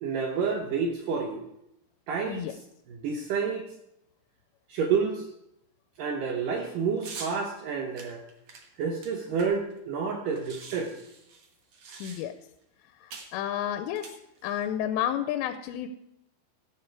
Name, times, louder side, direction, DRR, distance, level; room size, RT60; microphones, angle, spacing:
voice 1, 0.0-1.5 2.1-2.5 2.9-3.7 4.7-5.3 6.0-8.2 8.8-10.9, right 5 dB, 80° right, 2 dB, 1.9 m, -29 dB
sound 1, 7.0-7.4 8.0-9.8 10.0-10.1 10.3-12.5 13.1-13.4 13.9-14.7, right 4 dB, 65° right, 1.6 m, -45 dB
voice 2, 12.0-12.3 13.0-14.1 14.4-15.9, left 10 dB, 80° left, 9 dB, 2.7 m, -31 dB
16.0 x 7.6 x 4.6 m, 0.80 s
omnidirectional pair, 5.3 m